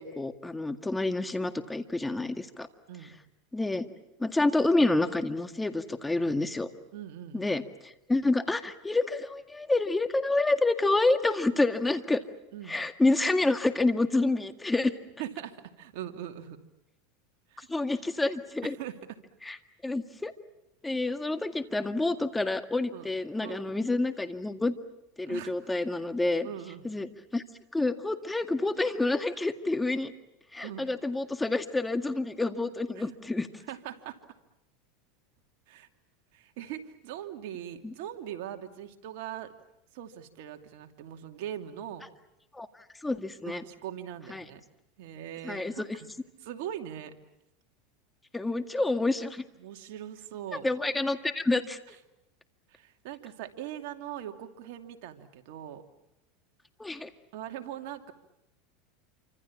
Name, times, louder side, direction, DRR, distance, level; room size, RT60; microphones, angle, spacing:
voice 1, 0.0-2.7 3.5-3.9 4.2-6.7 7.3-12.2 12.7-14.9 17.7-18.8 19.4-19.6 19.8-20.3 20.8-24.7 25.2-26.5 26.8-27.4 27.7-30.1 30.5-33.5 37.8-37.9 42.5-42.7 43.0-43.6 44.3-44.4 45.4-45.9 48.3-49.4 50.6-51.8 56.8-57.1, left 2 dB, 10° left, 8 dB, 1.9 m, -28 dB
voice 2, 6.9-7.5 12.5-12.8 15.2-16.6 17.5-17.7 18.6-19.2 22.9-23.1 23.4-23.7 25.2-25.7 26.4-26.9 30.6-30.9 33.0-33.1 33.7-34.2 35.7-35.9 36.3-39.5 39.9-42.0 43.5-44.6 45.0-46.1 46.4-47.1 49.6-50.6 52.7-55.8 57.3-58.1, right 11 dB, 70° right, 5 dB, 2.7 m, -41 dB
28.0 x 26.0 x 7.4 m, 0.87 s
supercardioid pair, 110°, 0 cm